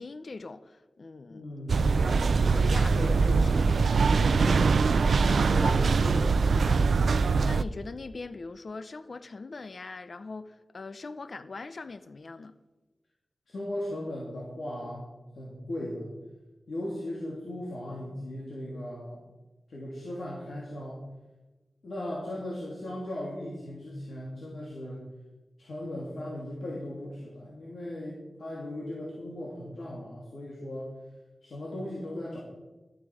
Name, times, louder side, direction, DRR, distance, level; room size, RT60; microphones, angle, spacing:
voice 1, 0.0-1.5 1.9-3.5 4.1-4.5 5.6-5.9 7.4-12.5, left 3 dB, 55° left, 0.7 m, -41 dB
voice 2, 1.3-1.9 3.0-3.6 4.4-5.0 5.5-6.7 13.5-15.1 15.3-16.1 16.7-19.2 19.7-21.0 21.8-25.0 25.6-30.9 31.4-32.4, left 1 dB, 75° left, 2.9 m, -37 dB
sound 1, 1.7-7.6, right 4 dB, 80° right, 0.4 m, -23 dB
12.5 x 8.4 x 6.3 m
wide cardioid pair, 75°, 0 cm